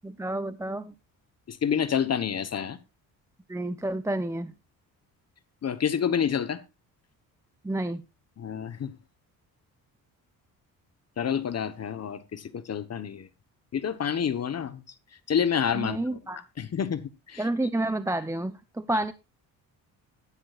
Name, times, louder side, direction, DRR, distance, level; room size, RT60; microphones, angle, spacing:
voice 1, 0.0-0.9 3.5-4.5 7.6-8.0 15.7-16.4 17.4-19.1, right 1 dB, 10° right, 0.7 m, -30 dB
voice 2, 1.5-2.8 5.6-6.6 8.4-8.9 11.2-13.3 13.7-14.8 15.3-16.0 16.6-17.5, left 8 dB, 45° left, 1.1 m, -28 dB
14.5 x 11.0 x 2.5 m
cardioid pair, 100°, 36 cm